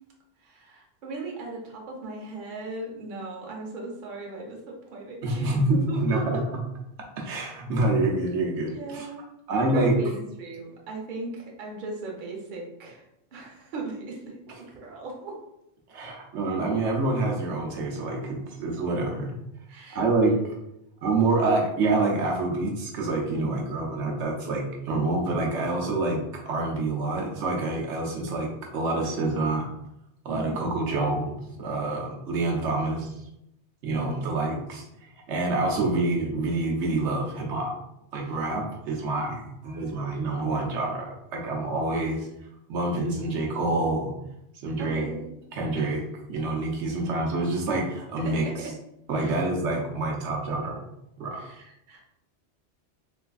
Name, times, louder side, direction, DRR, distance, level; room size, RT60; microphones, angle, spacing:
voice 1, 0.4-6.4 8.7-9.2 9.6-13.0 13.3-15.3 19.7-20.4 23.3-23.7 30.3-30.8 33.9-34.6 38.2-38.4 44.8-45.3 45.7-45.9 48.2-48.7 49.1-49.4 51.3-52.0, right 3 dB, 50° right, -1 dB, 0.8 m, -37 dB
voice 2, 5.2-6.4 7.2-9.1 9.5-9.9 15.9-19.3 19.9-20.3 21.0-26.2 26.5-29.7 30.2-33.1 33.8-37.7 38.1-42.3 42.7-44.1 44.6-45.1 45.5-46.0 46.3-48.4 49.1-50.8 51.2-51.4, right 2 dB, 85° right, -1 dB, 1.0 m, -27 dB
3.4 x 3.2 x 2.3 m, 0.83 s
omnidirectional pair, 1.2 m